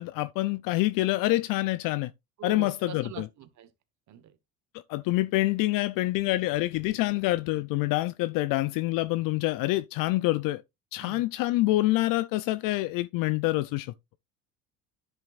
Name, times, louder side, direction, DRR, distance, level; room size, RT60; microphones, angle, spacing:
voice 1, 0.0-2.1 2.4-3.3 4.9-10.6 10.9-13.9, left 18 dB, 60° left, 0.5 m, -26 dB
voice 2, 2.4-3.7 4.1-4.4 11.0-11.2, right 11 dB, 50° right, 1.3 m, -44 dB
10.5 x 6.8 x 2.5 m
hypercardioid pair, 75°, 38 cm